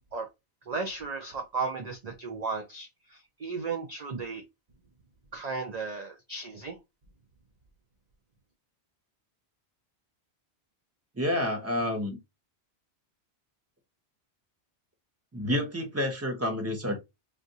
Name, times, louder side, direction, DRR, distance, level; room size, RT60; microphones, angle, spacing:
voice 1, 0.7-4.4 5.3-6.8, right 4 dB, 45° right, 0.6 m, -35 dB
voice 2, 11.2-12.2 15.3-17.0, left 1 dB, 15° right, 0.9 m, -29 dB
3.6 x 2.5 x 2.7 m
omnidirectional pair, 1.1 m